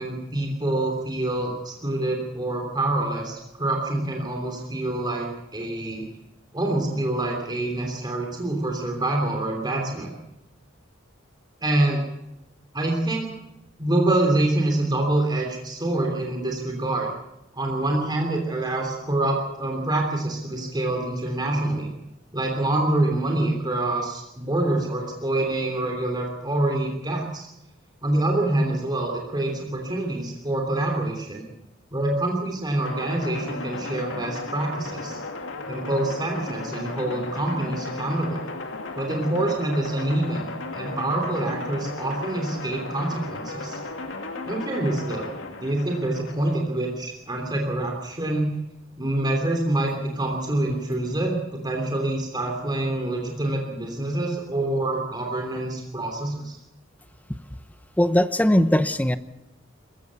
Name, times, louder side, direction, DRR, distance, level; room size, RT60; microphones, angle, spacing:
voice 1, 0.0-5.3 5.5-6.1 6.5-10.1 11.6-12.0 12.7-13.3 13.8-17.1 17.5-21.9 22.3-27.5 28.0-31.4 31.9-35.2 35.7-38.4 39.0-40.5 40.7-43.8 44.5-45.3 45.6-48.5 49.0-56.6, right 1 dB, 20° right, 1 dB, 3.1 m, -26 dB
sound 1, 32.8-46.5, left 3 dB, 70° left, 2.6 m, -35 dB
voice 2, 58.0-59.2, left 1 dB, 10° left, 13 dB, 0.8 m, -19 dB
21.5 x 15.0 x 8.3 m, 0.89 s
head